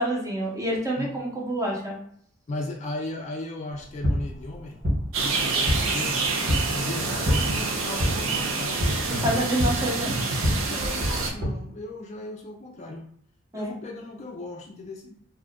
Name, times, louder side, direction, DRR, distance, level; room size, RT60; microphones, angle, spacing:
voice 1, 0.0-2.0 9.1-10.1 13.5-13.7, right 1 dB, 15° right, -2 dB, 0.8 m, -27 dB
voice 2, 2.5-4.8 5.2-6.3 6.7-8.8 9.3-9.5 10.7-13.1 13.5-15.2, left 2 dB, 35° left, 0 dB, 0.4 m, -36 dB
sound 1, 3.7-11.5, equal, 60° right, 1.1 m, -28 dB
sound 2, 5.1-11.3, right 3 dB, 85° right, 0.6 m, -27 dB
2.7 x 2.4 x 3.5 m, 0.65 s
head